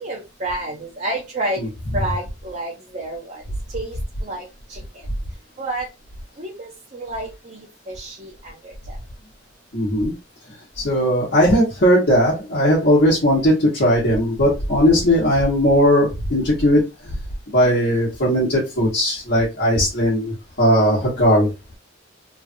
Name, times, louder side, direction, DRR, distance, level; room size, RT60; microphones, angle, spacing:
voice 1, 0.0-1.6 1.9-3.4 3.7-4.4 4.7-4.8 5.6-5.9 6.4-8.7, right 1 dB, 40° right, -2 dB, 0.7 m, -29 dB
voice 2, 9.7-10.1 10.8-16.8 17.5-21.5, equal, 55° left, -7 dB, 1.2 m, -18 dB
3.2 x 2.4 x 2.5 m, 0.25 s
head